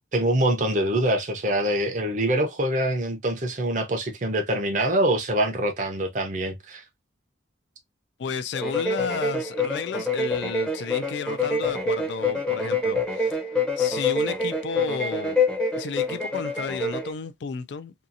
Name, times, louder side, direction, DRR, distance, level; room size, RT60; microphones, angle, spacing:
voice 1, 0.1-6.8, right 1 dB, 40° right, 0.6 m, -24 dB
voice 2, 8.2-13.4 13.8-15.4 15.7-17.9, left 5 dB, 65° left, 0.3 m, -33 dB
sound 1, 8.5-17.1, left 3 dB, 5° left, 0.7 m, -26 dB
2.7 x 2.4 x 2.5 m
head